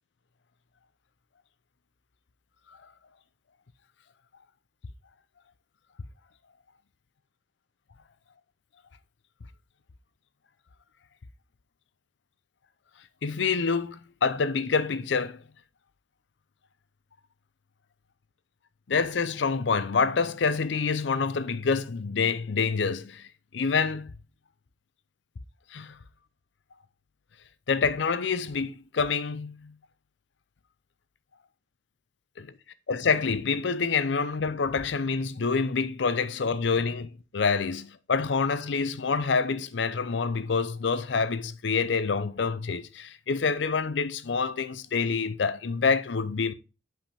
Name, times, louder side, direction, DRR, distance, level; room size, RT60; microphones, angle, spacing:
voice 1, 13.2-15.4 18.9-23.3 23.5-24.1 25.7-26.0 27.7-29.7 32.4-32.5 32.9-46.5, left 5 dB, 70° left, 0.6 m, -27 dB
7.7 x 5.5 x 3.4 m
head